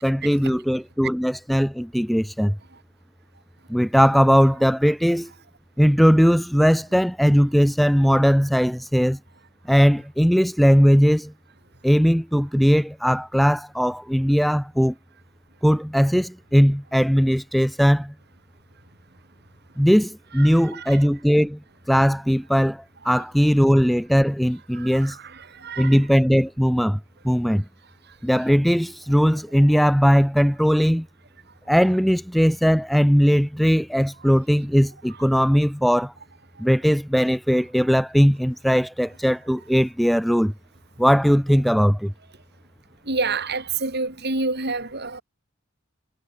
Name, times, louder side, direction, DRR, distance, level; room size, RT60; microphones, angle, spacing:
voice 1, 0.0-2.6 3.7-5.3 5.8-9.2 9.7-11.3 11.8-14.9 15.6-18.1 19.8-21.6 21.9-25.2 25.8-27.0 27.2-27.6 28.2-31.1 31.7-36.1 36.6-40.5 41.0-42.1, equal, ahead, 0.8 m, -19 dB
voice 2, 20.4-21.0 24.7-26.0 43.1-45.2, right 3 dB, 55° right, 6.7 m, -28 dB
head